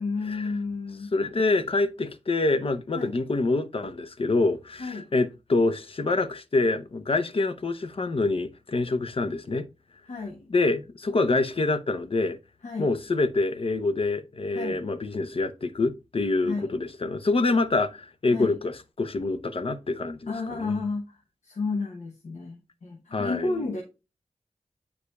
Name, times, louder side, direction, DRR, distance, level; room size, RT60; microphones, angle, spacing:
voice 1, 0.0-1.1 2.9-3.2 4.8-5.1 10.1-10.4 12.6-12.9 14.5-14.8 16.4-16.8 18.3-18.6 20.3-23.8, left 3 dB, 80° left, 1.1 m, -32 dB
voice 2, 1.1-9.7 10.5-12.4 12.8-20.8 23.1-23.5, left 3 dB, 50° left, 0.7 m, -26 dB
8.2 x 4.9 x 2.3 m
wide cardioid pair, 70°, 12 cm